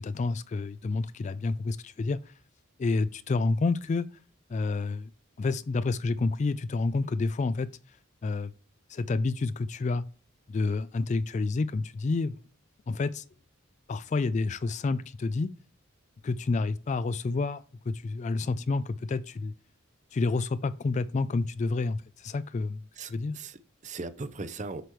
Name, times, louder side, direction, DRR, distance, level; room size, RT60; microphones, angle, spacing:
voice 1, 0.0-2.2 2.8-4.1 4.5-5.1 5.4-7.7 8.2-8.5 8.9-10.0 10.5-12.3 12.9-13.2 13.9-15.5 16.2-19.5 20.1-22.8 23.1-23.3, left 3 dB, 35° left, 0.3 m, -29 dB
voice 2, 23.0-24.8, right 3 dB, 35° right, 0.6 m, -39 dB
8.0 x 6.0 x 3.1 m
head